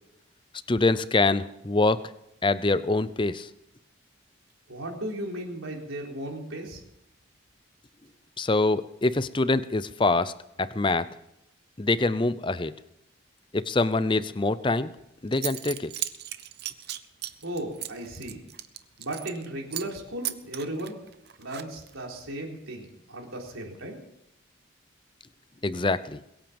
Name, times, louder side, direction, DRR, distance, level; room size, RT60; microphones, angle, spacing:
voice 1, 0.7-2.0 2.4-3.5 8.4-10.3 10.6-11.1 11.8-12.7 13.5-14.9 15.2-15.9 25.6-26.2, left 2 dB, 25° left, 15 dB, 0.6 m, -24 dB
voice 2, 4.7-6.8 17.4-18.4 19.0-21.0 21.4-24.0, right 1 dB, 80° right, -1 dB, 4.2 m, -36 dB
Zipper (clothing) / Coin (dropping), 15.0-15.1 15.3-19.4 19.7-20.0 20.2-22.0, right 13 dB, 50° right, 0.8 m, -36 dB
22.0 x 9.0 x 7.1 m, 0.83 s
head